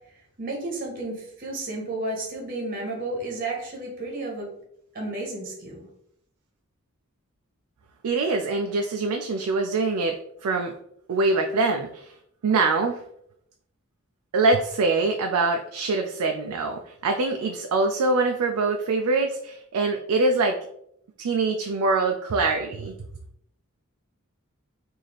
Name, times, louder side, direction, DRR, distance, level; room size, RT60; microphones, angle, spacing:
voice 1, 0.4-4.5 4.9-5.9, right 2 dB, 40° right, -1 dB, 1.0 m, -32 dB
voice 2, 8.0-10.1 10.4-10.7 11.1-12.1 12.4-13.0 14.3-20.6 21.2-22.9, right 3 dB, 85° right, 4 dB, 0.4 m, -24 dB
3.3 x 2.7 x 3.9 m, 0.72 s
head